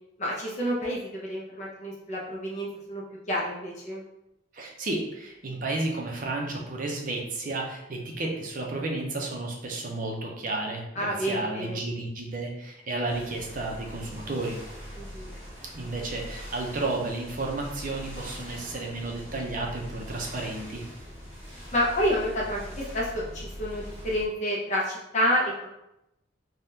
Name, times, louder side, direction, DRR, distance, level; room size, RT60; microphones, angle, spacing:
voice 1, 0.2-4.0 11.0-11.8 15.0-15.3 21.7-25.7, equal, 40° left, -4 dB, 0.6 m, -29 dB
voice 2, 4.5-14.6 15.7-20.8, right 2 dB, 45° right, 0 dB, 0.5 m, -32 dB
sound 1, 13.1-24.3, equal, 10° right, 0.8 m, -42 dB
3.4 x 2.2 x 2.7 m, 0.87 s
head